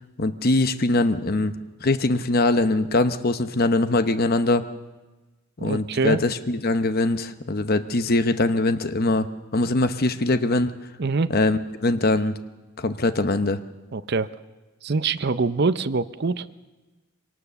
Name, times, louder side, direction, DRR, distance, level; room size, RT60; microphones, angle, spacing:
voice 1, 0.2-1.5 1.8-4.6 5.6-10.8 11.3-12.3 12.8-13.6, left 2 dB, 45° left, 10 dB, 0.8 m, -22 dB
voice 2, 5.6-6.2 11.0-11.3 13.9-14.3 14.8-16.5, right 4 dB, 50° right, 13 dB, 0.6 m, -24 dB
24.0 x 18.5 x 6.9 m, 1.2 s
head